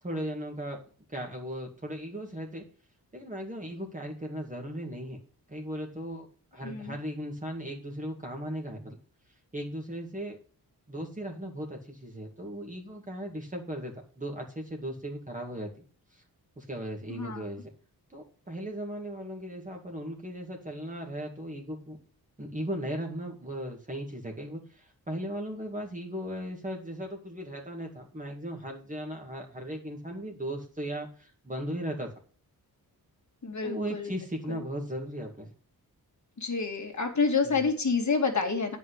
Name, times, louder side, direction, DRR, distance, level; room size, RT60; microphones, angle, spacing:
voice 1, 0.0-0.8 1.1-2.7 3.1-5.2 5.5-6.3 6.5-9.0 9.5-10.4 10.9-15.7 16.1-16.2 16.6-17.7 18.1-22.0 22.4-32.1 33.6-35.5 37.4-37.6, equal, 20° right, 1 dB, 2.3 m, -37 dB
voice 2, 6.6-7.0 17.1-17.4 33.4-34.1 34.5-34.6 36.4-38.8, left 4 dB, 45° left, 3 dB, 2.6 m, -28 dB
9.3 x 5.6 x 8.1 m, 0.41 s
wide cardioid pair, 95°, 38 cm